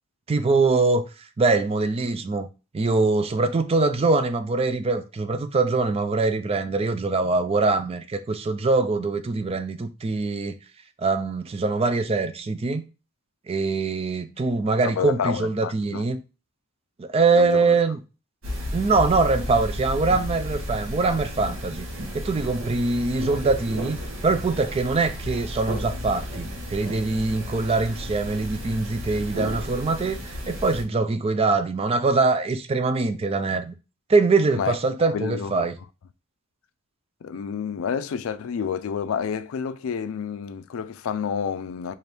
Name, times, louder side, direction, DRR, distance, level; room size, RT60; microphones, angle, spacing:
voice 1, 0.3-1.0 1.4-2.5 2.7-10.6 11.0-12.8 13.5-16.2 17.0-18.0 18.7-21.9 22.1-24.0 24.2-33.7 34.1-35.8, right 3 dB, 30° right, 0.4 m, -23 dB
voice 2, 15.0-16.0 17.4-17.8 34.6-34.7 35.1-35.7 37.2-41.9, left 7 dB, 75° left, 0.4 m, -29 dB
sound 1, 18.4-30.8, equal, 70° right, 1.0 m, -33 dB
4.3 x 2.5 x 3.4 m
head